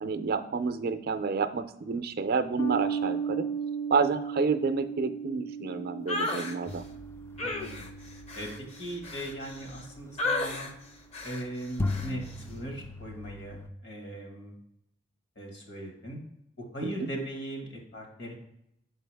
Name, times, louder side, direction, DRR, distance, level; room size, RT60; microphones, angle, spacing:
voice 1, 0.0-3.5 3.9-6.8 16.8-17.1, right 5 dB, 55° right, 9 dB, 0.5 m, -29 dB
sound 1, 2.6-9.3, right 6 dB, 90° left, 0.8 m, -36 dB
sound 2, 6.1-6.5 7.4-9.8 10.2-10.7 11.1-11.4 11.9-12.1, left 2 dB, 35° left, 0.7 m, -33 dB
sound 3, 6.7-10.6 11.2-11.3 11.8-13.7, left 2 dB, 15° left, 0.3 m, -39 dB
voice 2, 7.4-7.9 8.3-8.5 8.8-10.7 11.2-14.6 15.4-16.2 16.6-18.3, right 1 dB, 65° left, 2 dB, 1.7 m, -39 dB
7.1 x 4.5 x 3.4 m, 0.79 s
head